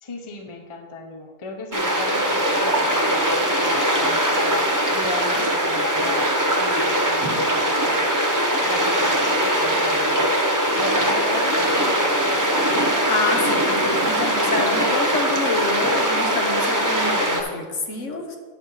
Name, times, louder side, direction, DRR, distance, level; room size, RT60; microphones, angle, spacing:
voice 1, 0.0-6.3 6.5-10.3 10.7-12.2, left 2 dB, 30° left, 3 dB, 0.7 m, -35 dB
sound 1, 1.7-17.4, right 1 dB, 15° right, 0.7 m, -21 dB
voice 2, 12.8-18.4, left 3 dB, 65° left, 3 dB, 1.3 m, -28 dB
9.3 x 4.2 x 6.5 m, 1.4 s
omnidirectional pair, 1.4 m